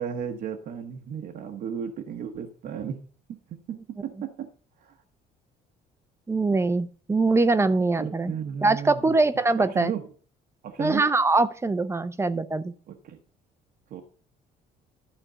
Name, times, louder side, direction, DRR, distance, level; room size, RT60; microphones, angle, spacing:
voice 1, 0.0-3.0 3.3-4.5 4.8-5.0 8.0-9.2 9.6-10.1 10.6-11.0 12.9-13.2 13.9-14.0, right 8 dB, 60° right, 3 dB, 1.1 m, -34 dB
voice 2, 6.3-8.3 8.6-9.9 10.8-12.7, right 3 dB, 15° right, 13 dB, 0.7 m, -23 dB
12.0 x 4.4 x 6.7 m, 0.41 s
cardioid pair, 110°, 17 cm